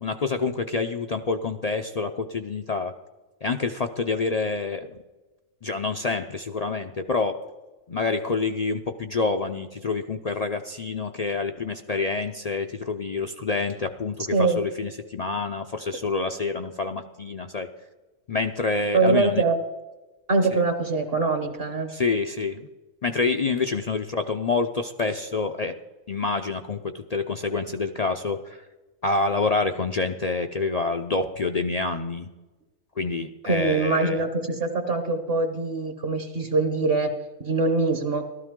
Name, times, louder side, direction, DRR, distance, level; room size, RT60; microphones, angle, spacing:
voice 1, 0.0-2.9 3.4-4.9 5.6-7.4 7.9-17.7 18.3-19.4 21.9-22.6 23.0-25.7 26.1-28.6 29.0-32.3 33.0-34.2, left 4 dB, 55° left, 6 dB, 0.4 m, -27 dB
voice 2, 18.9-19.6 20.3-21.9 33.5-37.1 37.4-38.2, right 3 dB, 50° right, 7 dB, 1.2 m, -23 dB
14.5 x 13.0 x 3.7 m, 1.1 s
omnidirectional pair, 1.4 m